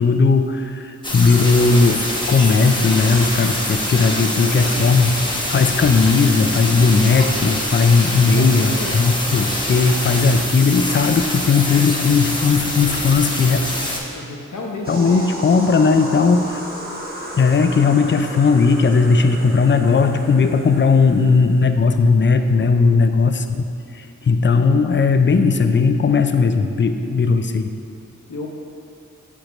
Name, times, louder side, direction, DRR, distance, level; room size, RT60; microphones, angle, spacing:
voice 1, 0.0-2.0 2.3-5.1 5.5-13.6 14.9-16.6 17.3-23.7 23.9-27.7, left 4 dB, 40° left, 8 dB, 0.4 m, -17 dB
sound 1, 1.0-14.0, left 1 dB, 15° left, 1.1 m, -25 dB
voice 2, 4.4-4.9 8.4-9.0 14.1-15.5 22.5-23.1 27.1-27.2 28.3-28.5, left 2 dB, 70° left, -1 dB, 1.0 m, -33 dB
sound 2, 14.8-21.8, equal, 30° right, 1.3 m, -34 dB
7.2 x 5.1 x 3.1 m, 2.5 s
cardioid pair, 45°, 31 cm